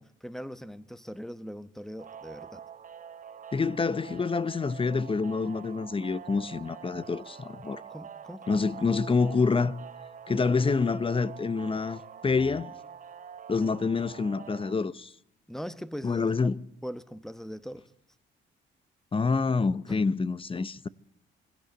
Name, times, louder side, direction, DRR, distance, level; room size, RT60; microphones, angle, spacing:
voice 1, 0.0-2.6 7.9-8.6 15.5-16.6 16.8-17.9 19.9-20.0, equal, ahead, 1.1 m, -41 dB
sound 1, 2.0-14.7, right 8 dB, 40° right, 0.9 m, -46 dB
voice 2, 3.5-7.8 8.5-9.7 10.3-12.7 13.5-15.1 16.0-16.6 19.1-20.9, left 4 dB, 25° left, 0.9 m, -27 dB
21.0 x 17.0 x 7.9 m
cardioid pair, 90°, 20 cm